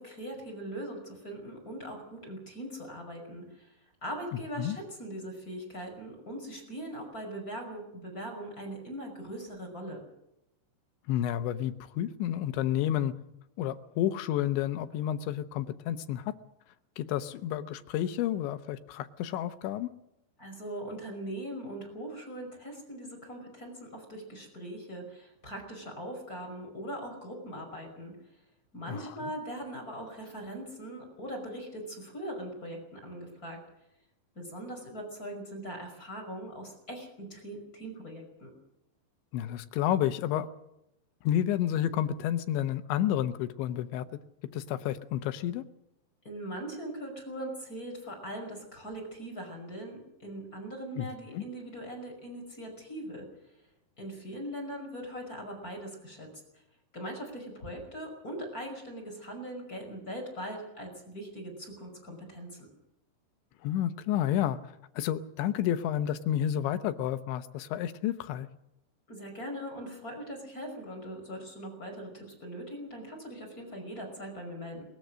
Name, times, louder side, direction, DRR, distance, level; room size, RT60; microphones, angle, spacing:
voice 1, 0.0-3.8 4.0-10.0 20.4-28.1 28.7-33.6 34.3-38.5 46.2-53.3 54.0-56.6 56.9-62.7 69.1-74.8, right 1 dB, 20° left, 1 dB, 5.8 m, -41 dB
voice 2, 11.1-13.1 13.6-16.3 17.0-19.9 28.9-29.2 39.3-40.5 41.2-44.0 44.4-45.6 51.0-51.1 51.3-51.4 63.6-64.6 65.0-68.5, left 11 dB, 85° left, 11 dB, 3.4 m, -30 dB
21.5 x 21.0 x 6.3 m, 0.83 s
omnidirectional pair, 5.2 m